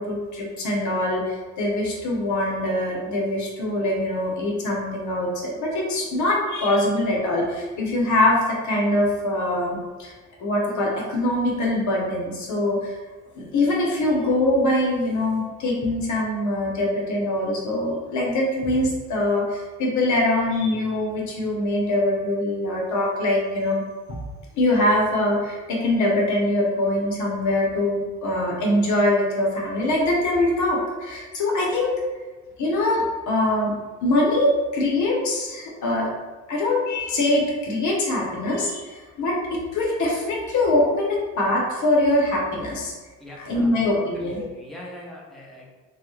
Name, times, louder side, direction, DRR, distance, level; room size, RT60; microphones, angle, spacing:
voice 1, 0.0-10.1 10.4-12.9 13.4-23.8 24.1-24.2 24.6-32.0 32.6-33.7 34.0-36.1 36.5-42.9 43.4-44.4, left 1 dB, 70° left, -2 dB, 0.9 m, -23 dB
voice 2, 43.2-45.7, left 1 dB, ahead, -4 dB, 0.8 m, -42 dB
3.5 x 2.3 x 3.1 m, 1.3 s
cardioid pair, 90°, 30 cm